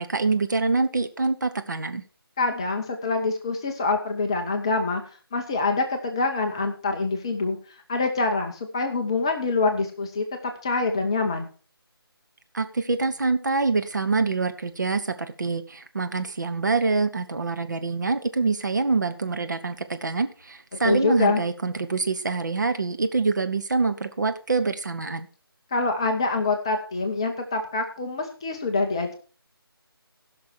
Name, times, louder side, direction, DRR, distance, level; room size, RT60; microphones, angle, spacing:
voice 1, 0.0-2.0 12.5-25.3, right 4 dB, 50° right, 8 dB, 1.0 m, -25 dB
voice 2, 2.4-5.0 5.3-7.6 7.9-11.5 20.8-21.4 25.7-29.1, left 3 dB, 10° left, 4 dB, 0.6 m, -25 dB
15.0 x 6.1 x 4.6 m, 0.38 s
figure-of-eight pair, 155°, 13 cm